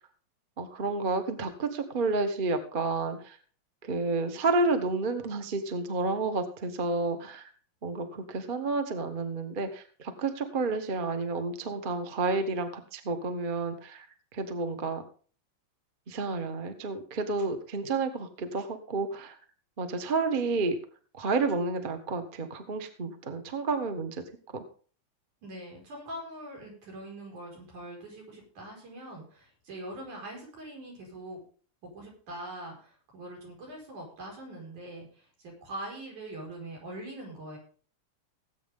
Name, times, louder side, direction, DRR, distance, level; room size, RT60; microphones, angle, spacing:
voice 1, 0.6-3.4 3.8-7.5 7.8-14.1 14.3-15.0 16.1-19.3 19.8-20.8 21.1-24.2 24.5-24.6, right 3 dB, 45° right, 8 dB, 0.6 m, -30 dB
voice 2, 25.4-31.4 31.9-37.6, right 1 dB, 90° right, -1 dB, 6.5 m, -43 dB
18.5 x 8.7 x 3.7 m, 0.42 s
omnidirectional pair, 3.4 m